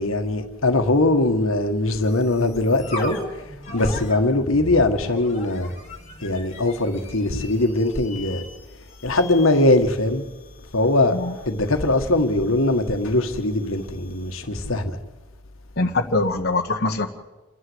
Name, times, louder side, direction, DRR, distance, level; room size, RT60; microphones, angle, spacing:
voice 1, 0.0-5.7 6.2-8.4 9.0-10.3 10.7-11.2 11.4-15.0, left 2 dB, 70° left, 1.6 m, -21 dB
sound 1, 2.0-14.5, left 1 dB, 30° left, 3.2 m, -39 dB
voice 2, 15.8-17.1, left 2 dB, 50° left, 1.5 m, -23 dB
29.0 x 11.5 x 8.0 m
head